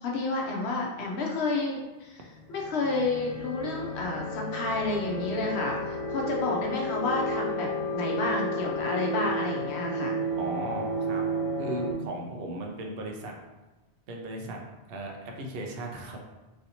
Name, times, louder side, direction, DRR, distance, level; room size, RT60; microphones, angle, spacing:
voice 1, 0.0-2.2 2.5-10.1, left 3 dB, 80° left, -1 dB, 0.9 m, -30 dB
sound 1, 2.3-11.9, equal, 60° left, 0.3 m, -32 dB
voice 2, 10.4-11.2 11.6-13.3 14.1-14.6 14.9-16.2, right 2 dB, 65° right, 1 dB, 0.8 m, -36 dB
3.1 x 2.7 x 2.8 m, 1.1 s
omnidirectional pair, 1.1 m